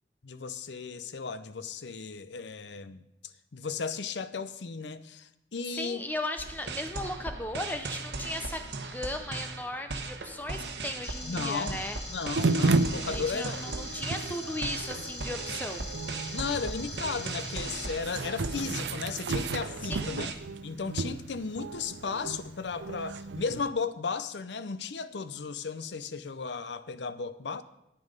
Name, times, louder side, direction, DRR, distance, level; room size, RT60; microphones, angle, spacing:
voice 1, 0.2-3.0 3.5-6.1 11.2-11.8 12.1-13.6 16.3-20.3 20.6-27.6, left 5 dB, 85° left, 13 dB, 0.6 m, -35 dB
voice 2, 5.7-12.0 13.0-16.0 19.8-20.1, left 1 dB, 10° left, 7 dB, 0.5 m, -37 dB
sound 1, 6.4-20.3, right 3 dB, 75° right, 1.1 m, -38 dB
sound 2, 11.0-17.9, left 1 dB, 55° left, 3.0 m, -43 dB
sound 3, 12.4-23.7, right 3 dB, 90° right, 0.5 m, -33 dB
9.7 x 9.4 x 5.3 m, 0.84 s
head